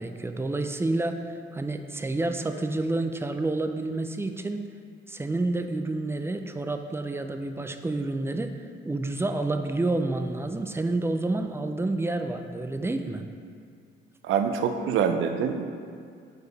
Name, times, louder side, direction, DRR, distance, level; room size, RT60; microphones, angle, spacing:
voice 1, 0.0-4.7 5.1-8.6 8.9-13.2, right 2 dB, 10° right, 6 dB, 0.4 m, -29 dB
voice 2, 14.2-15.6, right 7 dB, 80° right, 6 dB, 0.6 m, -25 dB
4.8 x 4.8 x 5.2 m, 2.2 s
cardioid pair, 90°, 20 cm